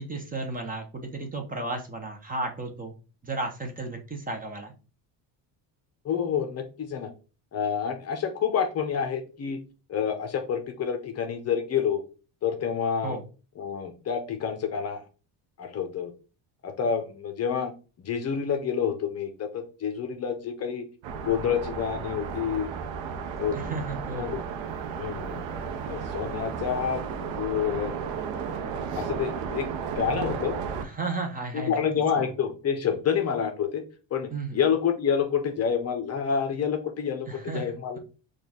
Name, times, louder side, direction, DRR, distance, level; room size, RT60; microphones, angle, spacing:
voice 1, 0.0-2.9 3.2-4.7 13.0-13.2 23.5-24.3 30.8-31.8 32.2-32.3 34.3-34.6 37.3-38.0, right 3 dB, 20° right, 4 dB, 0.7 m, -34 dB
voice 2, 6.0-7.1 7.5-9.6 9.9-12.0 12.4-13.2 13.6-15.0 15.6-16.1 16.6-17.7 18.0-20.8 21.2-22.7 23.4-23.7 24.1-24.4 24.9-25.5 25.8-27.9 28.9-29.7 29.9-30.6 31.5-33.8 34.1-37.3 37.5-38.0, left 7 dB, 35° left, 6 dB, 0.6 m, -28 dB
sound 1, 21.0-30.8, right 6 dB, 85° right, 0.7 m, -34 dB
4.4 x 2.4 x 3.5 m, 0.34 s
cardioid pair, 135°, 43 cm